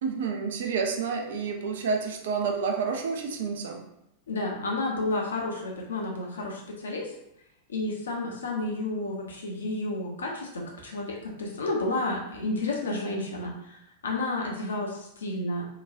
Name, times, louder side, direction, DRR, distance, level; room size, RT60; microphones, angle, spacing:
voice 1, 0.0-3.8, right 5 dB, 60° right, 4 dB, 0.4 m, -29 dB
voice 2, 4.3-7.1 7.7-13.8 14.0-15.6, left 2 dB, 70° left, -1 dB, 0.6 m, -31 dB
2.9 x 2.2 x 2.5 m, 0.80 s
figure-of-eight pair, 90°, 0 cm